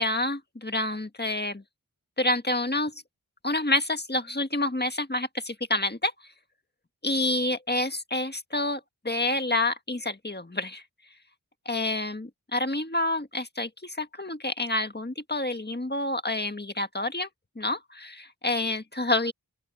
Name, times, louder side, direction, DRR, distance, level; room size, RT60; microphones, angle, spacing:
voice 1, 0.0-1.6 2.2-2.9 3.4-6.1 7.0-10.8 11.6-17.3 17.5-19.3, left 2 dB, 25° left, 1.7 m, -28 dB
open air
wide cardioid pair, 45°, 37 cm